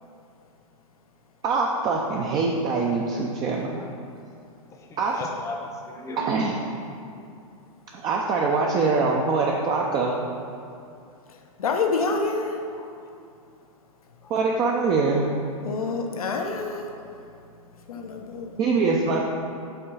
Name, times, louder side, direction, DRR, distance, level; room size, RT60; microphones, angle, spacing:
voice 1, 1.4-3.8 5.0-5.2 6.3-6.5 7.9-10.1 14.3-15.2 18.6-19.2, right 4 dB, 25° right, -2 dB, 0.5 m, -23 dB
voice 2, 4.7-6.3 7.1-7.2 12.7-12.9 14.2-14.3 15.8-17.0, left 2 dB, 15° left, 1 dB, 0.7 m, -40 dB
voice 3, 11.6-12.6 15.6-16.9 17.9-18.5, left 4 dB, 85° left, 3 dB, 0.8 m, -27 dB
5.6 x 3.7 x 5.5 m, 2.4 s
hypercardioid pair, 130°, 18 cm